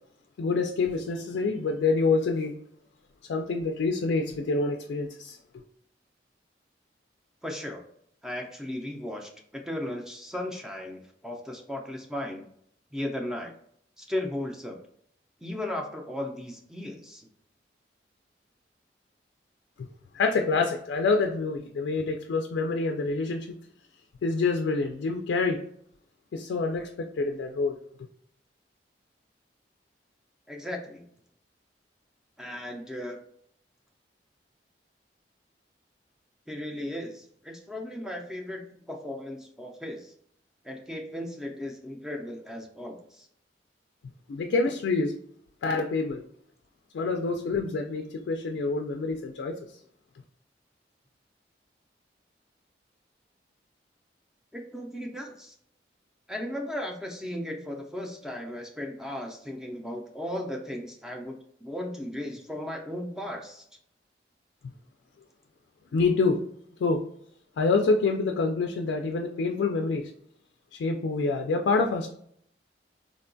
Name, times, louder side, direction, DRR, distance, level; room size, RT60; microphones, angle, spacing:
voice 1, 0.4-2.5 3.3-5.4 19.8-19.9 20.1-23.5 24.2-25.6 26.3-27.8 44.3-45.1 45.6-46.2 46.9-49.6 65.9-66.4 66.8-67.0 67.6-70.1 70.7-72.1, left 3 dB, 85° left, 3 dB, 0.3 m, -26 dB
voice 2, 7.4-7.8 8.2-9.3 9.6-12.4 12.9-13.5 14.0-14.8 15.4-17.3 30.5-31.0 32.4-33.2 36.5-40.1 40.6-43.3 54.5-55.5 56.3-61.4 61.6-63.6, left 1 dB, 5° right, 1 dB, 0.4 m, -36 dB
3.7 x 2.2 x 2.5 m, 0.68 s
head